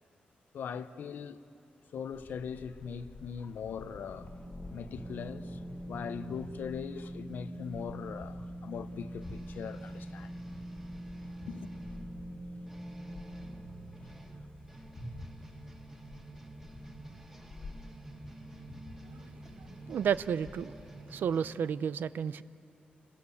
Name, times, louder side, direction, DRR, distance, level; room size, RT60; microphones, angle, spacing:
voice 1, 0.5-1.4 1.9-4.3 4.7-10.4 11.5-11.7, left 7 dB, 80° left, 0.9 m, -41 dB
sound 1, 2.1-20.9, left 2 dB, 50° left, 1.8 m, -50 dB
sound 2, 3.8-15.3, right 1 dB, 5° left, 1.4 m, -45 dB
sound 3, 9.2-21.5, right 2 dB, 15° right, 2.1 m, -51 dB
voice 2, 19.9-20.7 21.1-22.4, right 8 dB, 80° right, 0.6 m, -31 dB
28.5 x 22.0 x 7.1 m
wide cardioid pair, 145°, 3 cm